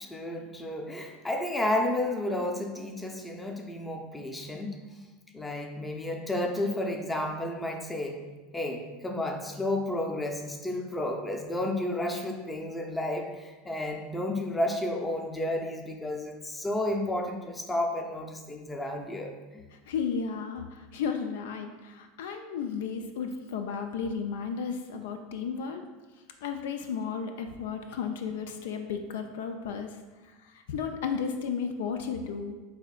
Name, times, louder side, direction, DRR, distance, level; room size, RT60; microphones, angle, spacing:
voice 1, 0.0-4.8 5.3-8.2 8.5-19.6, left 1 dB, 15° left, 3 dB, 0.6 m, -32 dB
voice 2, 19.7-25.8 26.4-30.0 30.2-32.6, left 6 dB, 75° left, 6 dB, 0.3 m, -34 dB
6.2 x 2.6 x 2.4 m, 1.2 s
hypercardioid pair, 95°, 0 cm